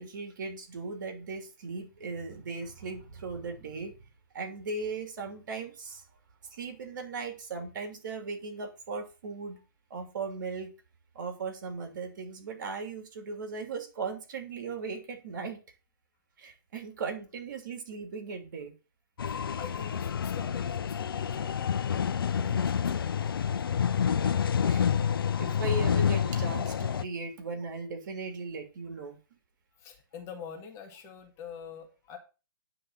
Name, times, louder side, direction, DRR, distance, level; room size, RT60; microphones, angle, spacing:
voice 1, 0.0-4.0 4.3-6.0 6.5-9.6 9.9-10.7 11.1-15.6 16.4-18.7 22.4-22.6 24.2-24.3 24.6-24.9 25.4-29.2, right 4 dB, 55° right, 6 dB, 2.8 m, -38 dB
sound 1, 19.2-27.1, left 7 dB, 75° left, 0.6 m, -28 dB
voice 2, 19.3-24.2 28.9-29.0 29.8-32.2, left 7 dB, 20° left, 3 dB, 1.7 m, -47 dB
10.0 x 3.8 x 7.3 m, 0.32 s
hypercardioid pair, 145°, 12 cm